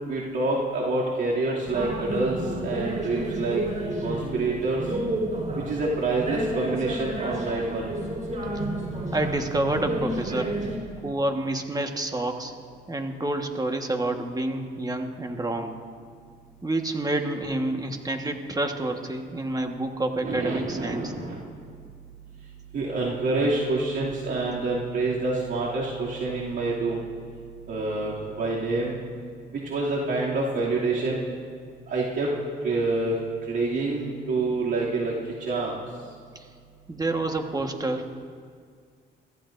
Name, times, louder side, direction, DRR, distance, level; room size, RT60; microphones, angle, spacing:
voice 1, 0.1-3.6 4.0-4.8 5.7-7.9 20.2-21.4 22.7-27.0 27.7-29.0 29.5-31.2 31.9-32.3 32.6-33.2 33.5-35.1 35.4-35.8, right 3 dB, 65° right, -6 dB, 2.6 m, -27 dB
sound 1, 1.7-10.8, right 1 dB, 35° right, 3.7 m, -31 dB
voice 2, 9.1-10.6 11.0-12.5 12.9-15.8 16.6-21.1 36.3-36.5 36.9-38.2, right 2 dB, 20° right, 4 dB, 1.4 m, -28 dB
24.5 x 14.5 x 2.6 m, 2.1 s
cardioid pair, 90°, 20 cm